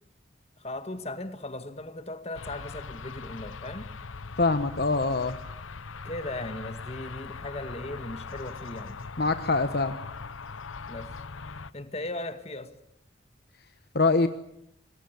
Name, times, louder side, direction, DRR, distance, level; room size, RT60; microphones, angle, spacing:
voice 1, 0.6-3.9 6.0-9.1 10.9-11.1 11.7-12.8, left 2 dB, 30° left, 1.9 m, -37 dB
sound 1, 2.3-11.7, left 4 dB, 90° left, 0.9 m, -41 dB
voice 2, 4.4-5.4 9.2-10.0 13.9-14.3, left 3 dB, 55° left, 1.1 m, -24 dB
26.0 x 21.5 x 8.3 m
head